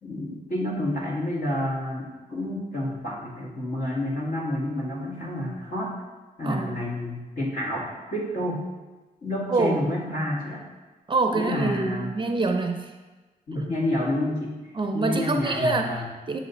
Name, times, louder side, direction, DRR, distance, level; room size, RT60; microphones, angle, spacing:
voice 1, 0.0-5.9 6.4-8.6 9.2-10.7 11.3-12.1 13.5-14.5 14.9-16.1, left 1 dB, 75° left, -6 dB, 1.9 m, -29 dB
voice 2, 6.4-6.8 9.5-9.8 11.1-12.9 14.7-16.4, right 3 dB, 35° right, 4 dB, 0.5 m, -26 dB
7.3 x 3.2 x 4.0 m, 1.2 s
wide cardioid pair, 155°, 15 cm